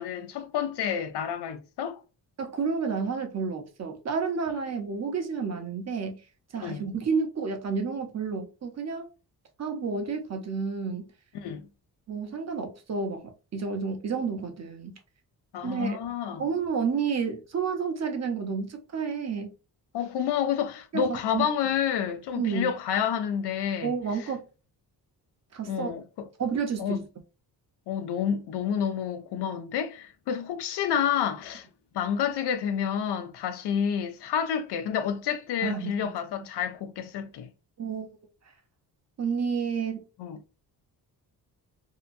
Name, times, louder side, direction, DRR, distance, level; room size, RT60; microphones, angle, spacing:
voice 1, 0.0-2.0 6.6-6.9 11.3-11.7 15.5-16.4 19.9-23.9 25.7-26.0 26.8-27.0 27.9-31.7 31.9-37.5 40.2-40.4, left 8 dB, 85° left, 0.6 m, -29 dB
voice 2, 2.4-6.2 6.5-9.1 9.6-11.1 12.1-15.0 15.6-16.0 16.4-19.5 20.9-21.5 22.3-22.7 23.8-24.4 25.5-26.0 26.4-27.0 35.6-36.1 37.8-38.1 39.2-40.0, right 5 dB, 40° right, 0.7 m, -30 dB
2.8 x 2.2 x 2.5 m
cardioid pair, 130°, 39 cm